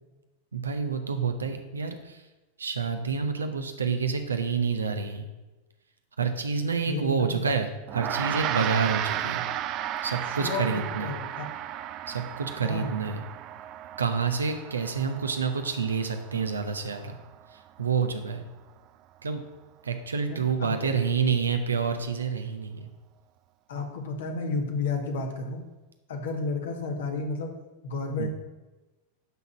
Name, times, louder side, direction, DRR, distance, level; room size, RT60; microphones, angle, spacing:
voice 1, 0.5-2.2 2.6-5.3 6.2-9.4 10.0-11.1 12.1-13.2 14.0-17.2 17.5-18.4 19.2-19.4 19.8-22.9 28.2-28.3, right 5 dB, 75° right, 7 dB, 1.0 m, -28 dB
voice 2, 6.9-7.4 10.3-11.5 12.6-13.0 20.6-20.9 23.7-25.7 26.1-27.6 27.8-28.3, left 3 dB, 60° left, 4 dB, 1.6 m, -32 dB
Gong, 7.9-17.5, right 12 dB, 35° right, 0.4 m, -34 dB
11.0 x 4.1 x 7.3 m, 1.1 s
figure-of-eight pair, 90°, 0 cm